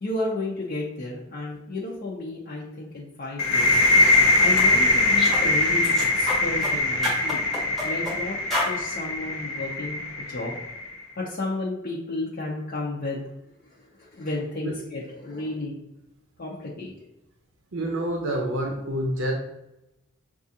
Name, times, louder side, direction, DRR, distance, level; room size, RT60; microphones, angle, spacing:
voice 1, 0.0-3.8 4.4-7.4 7.8-8.4 8.7-10.5 11.2-13.2 14.0-15.7 16.4-16.9, left 2 dB, 45° left, -5 dB, 0.6 m, -32 dB
sound 1, 3.4-10.9, left 2 dB, 90° left, 0.6 m, -22 dB
sound 2, 4.0-4.2 4.6-4.7 5.2-5.5 5.8-6.7 7.0-8.2 8.5-8.7, left 1 dB, ahead, 1.0 m, -29 dB
voice 2, 17.7-19.3, right 1 dB, 65° right, 1 dB, 0.6 m, -27 dB
6.0 x 2.4 x 2.7 m, 0.90 s
head